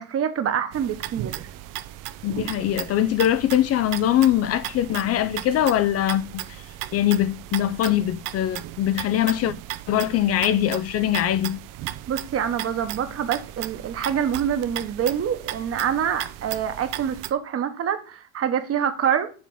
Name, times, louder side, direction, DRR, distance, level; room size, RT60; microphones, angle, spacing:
voice 1, 0.0-1.5 12.1-19.3, right 8 dB, 40° right, 1.1 m, -26 dB
sound 1, 0.7-17.3, right 14 dB, 65° right, 0.6 m, -36 dB
voice 2, 2.2-6.6 6.9-9.5 9.9-11.6, left 11 dB, 45° left, 0.4 m, -22 dB
7.3 x 2.9 x 5.4 m
supercardioid pair, 100°, 35 cm